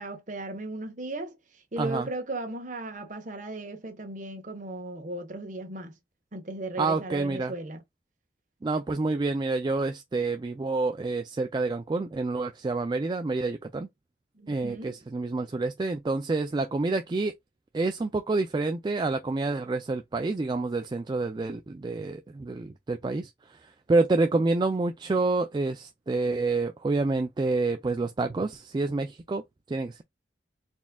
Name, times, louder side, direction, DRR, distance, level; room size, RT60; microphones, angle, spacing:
voice 1, 0.0-1.4 1.7-6.0 6.3-7.8 14.4-15.0, right 2 dB, 45° right, 1.1 m, -36 dB
voice 2, 1.8-2.1 6.8-7.5 8.6-13.9 14.5-17.3 17.7-29.4 29.7-30.0, right 3 dB, 25° right, 0.3 m, -28 dB
4.2 x 3.5 x 2.3 m
head